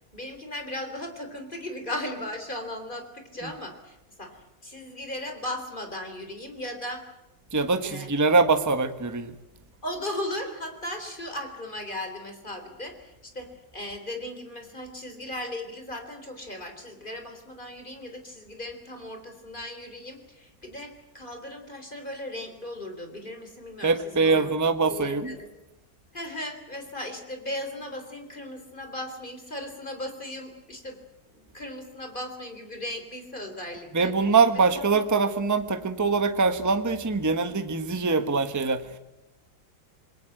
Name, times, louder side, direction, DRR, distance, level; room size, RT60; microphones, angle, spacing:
voice 1, 0.1-4.4 4.6-7.0 7.8-8.1 9.8-24.4 24.9-25.5 26.1-31.0 31.3-34.1 34.5-34.8, left 1 dB, 25° left, 6 dB, 3.7 m, -37 dB
voice 2, 7.5-9.4 23.8-25.4 33.9-38.9, right 4 dB, 10° right, 9 dB, 1.1 m, -23 dB
28.0 x 21.5 x 7.9 m, 0.95 s
omnidirectional pair, 2.1 m